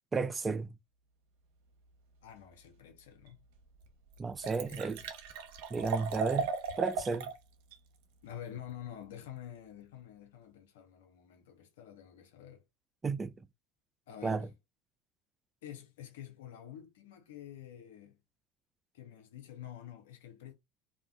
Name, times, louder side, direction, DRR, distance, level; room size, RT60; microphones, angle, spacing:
voice 1, 0.1-0.7 4.2-5.0 5.7-6.5 6.8-7.3 13.0-13.3 14.2-14.5, right 4 dB, 25° right, 0.3 m, -33 dB
voice 2, 2.2-3.4 4.5-4.8 8.2-12.6 14.1-14.5 15.6-18.2 18.9-20.5, left 10 dB, 85° left, 0.6 m, -48 dB
Liquid, 3.3-3.4 3.8-3.9 4.1-7.4 7.7-7.8, right 5 dB, 75° right, 0.7 m, -37 dB
2.4 x 2.1 x 3.5 m
supercardioid pair, 90°, 0 cm